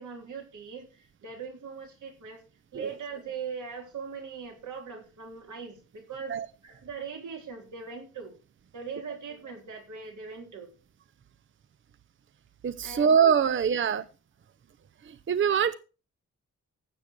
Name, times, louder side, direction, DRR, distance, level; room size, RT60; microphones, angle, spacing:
voice 1, 0.0-2.4 2.7-6.4 6.6-8.4 8.7-10.7 12.8-13.1 13.4-13.5, right 6 dB, 90° right, 3 dB, 3.9 m, -40 dB
voice 2, 12.6-14.0 15.1-15.7, right 7 dB, 40° right, 14 dB, 0.6 m, -24 dB
15.0 x 8.1 x 4.5 m, 0.34 s
wide cardioid pair, 135°, 29 cm